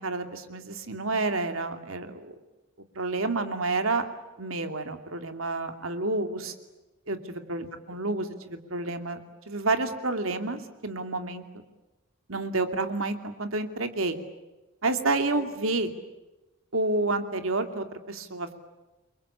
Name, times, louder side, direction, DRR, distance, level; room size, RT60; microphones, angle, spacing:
voice 1, 0.0-2.3 2.9-4.0 4.4-6.5 7.1-9.2 9.5-11.4 12.3-14.2 14.8-15.9 16.7-18.5, right 2 dB, 75° right, 7 dB, 2.7 m, -29 dB
29.0 x 23.5 x 8.6 m, 1.1 s
head